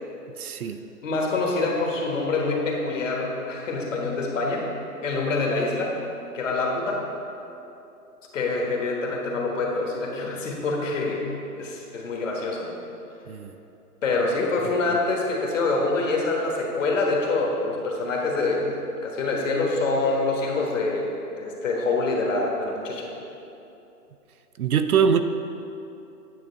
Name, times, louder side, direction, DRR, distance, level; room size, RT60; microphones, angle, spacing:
voice 1, 0.4-0.8 13.3-13.5 24.6-25.2, right 7 dB, 65° right, 9 dB, 0.5 m, -22 dB
voice 2, 1.0-4.7 5.0-6.0 6.3-7.1 8.3-11.3 11.6-12.7 14.0-23.1, left 3 dB, 50° left, -1 dB, 1.4 m, -26 dB
9.2 x 3.6 x 6.0 m, 2.8 s
hypercardioid pair, 165°, 48 cm